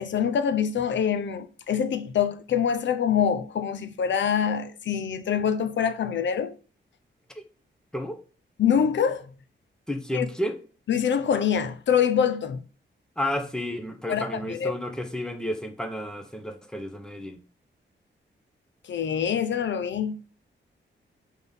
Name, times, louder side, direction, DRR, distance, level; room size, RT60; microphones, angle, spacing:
voice 1, 0.0-6.5 8.6-9.2 10.1-10.3 10.9-12.6 14.1-14.7 18.9-20.1, left 8 dB, 70° left, 0.7 m, -25 dB
voice 2, 9.9-10.6 13.2-17.4, left 1 dB, 5° left, 0.9 m, -31 dB
6.0 x 3.6 x 5.4 m
wide cardioid pair, 155°, 20 cm